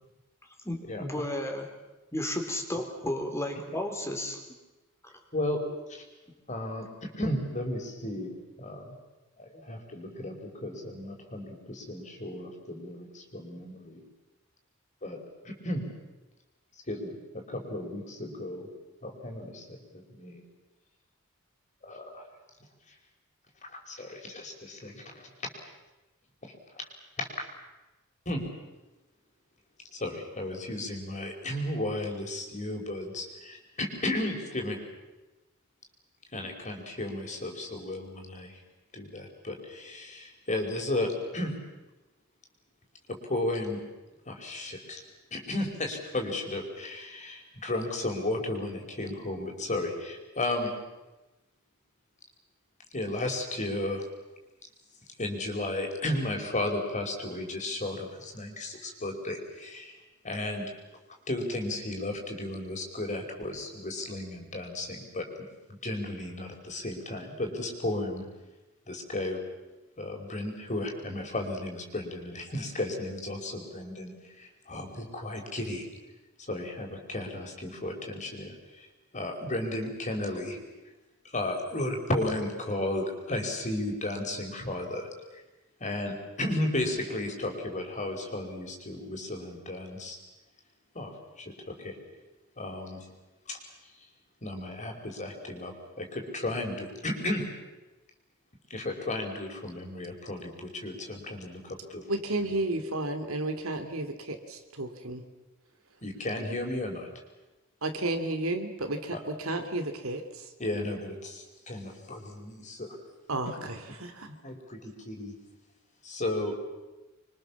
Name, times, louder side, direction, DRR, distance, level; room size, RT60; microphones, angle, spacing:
voice 1, 0.6-1.7 2.1-4.4, left 1 dB, 15° left, 4 dB, 4.0 m, -33 dB
voice 2, 5.3-5.6 5.9-6.0 6.5-8.9 9.4-14.0 15.0-15.2 15.4-15.9 16.9-18.7 19.0-20.4 21.8-22.3 22.9-23.0 23.6-25.3 26.4-26.9 27.2-27.3 28.3-28.4 29.9-34.8 36.3-38.6 38.9-41.5 43.1-43.8 44.3-45.0 45.3-50.7 52.9-54.0 55.2-60.0 60.2-60.7 61.3-65.3 65.7-68.3 68.9-69.4 70.0-75.9 76.4-78.9 79.1-80.6 81.2-85.4 85.8-90.2 90.9-92.0 92.6-93.1 93.5-93.6 94.4-97.5 98.7-102.1 106.0-107.1 109.1-109.2 110.6-113.0 113.4-114.0 114.4-115.4 116.0-116.6, left 1 dB, 35° left, 2 dB, 5.1 m, -34 dB
voice 3, 102.1-105.2 107.8-110.5 113.3-114.3, right 2 dB, 75° right, 7 dB, 2.8 m, -32 dB
27.5 x 24.0 x 7.3 m, 1.1 s
head